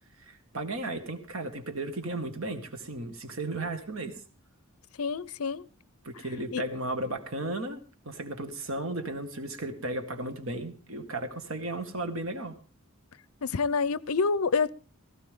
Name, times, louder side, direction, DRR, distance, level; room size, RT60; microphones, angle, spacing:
voice 1, 0.3-4.2 6.0-12.6, right 2 dB, 65° right, 2.0 m, -35 dB
voice 2, 5.0-5.6 6.5-6.6 13.4-14.7, left 4 dB, 80° left, 0.6 m, -27 dB
17.5 x 14.5 x 3.7 m
head